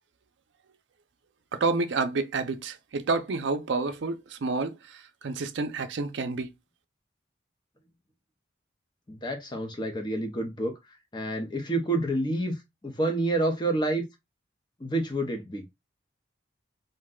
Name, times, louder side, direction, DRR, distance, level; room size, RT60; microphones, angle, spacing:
voice 1, 1.5-6.5, right 3 dB, 70° right, 0.5 m, -29 dB
voice 2, 9.1-10.7 11.1-12.5 12.8-14.1 14.8-15.6, right 1 dB, 25° left, 0.6 m, -28 dB
2.6 x 2.2 x 3.6 m
head